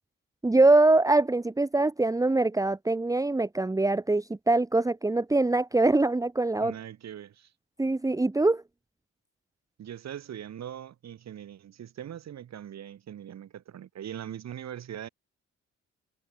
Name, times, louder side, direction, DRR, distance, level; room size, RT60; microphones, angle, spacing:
voice 1, 0.4-6.7 7.8-8.6, right 2 dB, 10° right, 1.0 m, -23 dB
voice 2, 6.6-7.5 9.8-15.1, right 10 dB, 60° right, 2.6 m, -41 dB
cardioid pair, 90°, 30 cm